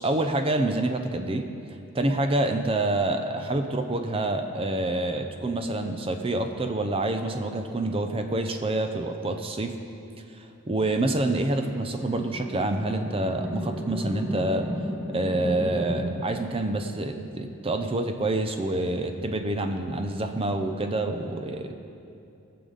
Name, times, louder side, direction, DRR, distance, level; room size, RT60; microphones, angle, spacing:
voice 1, 0.0-1.5 1.9-9.7 10.3-14.7 15.1-21.8, right 2 dB, 25° right, 6 dB, 0.6 m, -27 dB
sound 1, 12.0-16.4, equal, 5° right, 1.3 m, -33 dB
18.5 x 6.8 x 4.0 m, 2.7 s
head